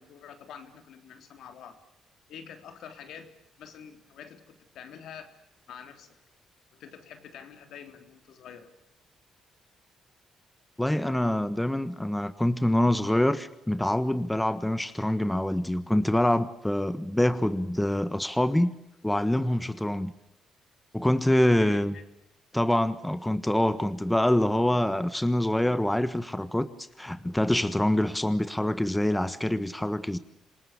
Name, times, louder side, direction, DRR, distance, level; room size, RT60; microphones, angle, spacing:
voice 1, 0.0-1.8 2.3-3.3 3.6-5.3 5.7-6.2 6.7-8.7 21.6-22.0, left 8 dB, 75° left, 7 dB, 3.7 m, -46 dB
voice 2, 10.8-18.7 19.0-20.1 20.9-21.9 22.5-26.7 27.0-30.2, left 1 dB, 5° left, 13 dB, 1.4 m, -25 dB
27.0 x 19.5 x 8.3 m, 0.84 s
cardioid pair, 90°, 0 cm